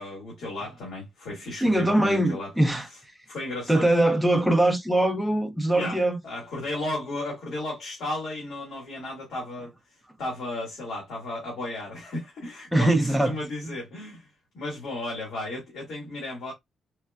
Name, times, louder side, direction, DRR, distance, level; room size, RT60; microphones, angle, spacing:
voice 1, 0.0-2.5 2.9-3.0 3.3-3.9 5.7-6.0 6.2-9.7 10.2-14.3 14.5-16.5, left 2 dB, 60° left, 1.8 m, -34 dB
voice 2, 1.6-3.1 3.7-6.2 12.7-13.4 13.6-13.7, right 1 dB, ahead, 0.4 m, -22 dB
4.5 x 2.2 x 2.3 m
cardioid pair, 170°, 0 cm